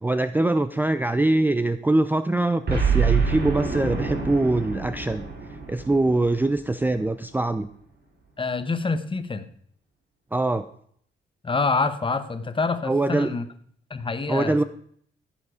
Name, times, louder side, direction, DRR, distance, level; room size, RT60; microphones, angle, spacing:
voice 1, 0.0-5.3 5.7-7.7 10.3-10.7 12.8-13.3 14.3-14.6, right 2 dB, 10° right, 12 dB, 0.5 m, -23 dB
Boom, 2.7-7.1, right 5 dB, 55° right, 4.7 m, -26 dB
voice 2, 8.4-9.5 11.4-13.5 13.9-14.6, left 4 dB, 25° left, 11 dB, 1.2 m, -26 dB
15.0 x 7.4 x 5.0 m, 0.62 s
cardioid pair, 90°, 20 cm